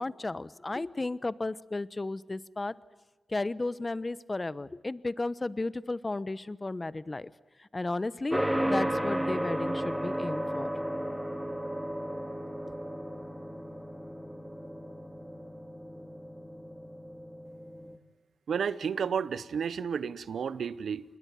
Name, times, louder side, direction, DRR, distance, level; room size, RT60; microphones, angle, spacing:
voice 1, 0.0-2.7 3.3-7.3 7.6-10.7, left 2 dB, 30° left, 17 dB, 1.0 m, -34 dB
sound 1, 8.3-18.0, equal, 5° right, 2.3 m, -34 dB
voice 2, 18.5-21.0, right 7 dB, 85° right, 17 dB, 0.9 m, -31 dB
27.5 x 21.5 x 9.5 m, 1.1 s
cardioid pair, 60°, 0 cm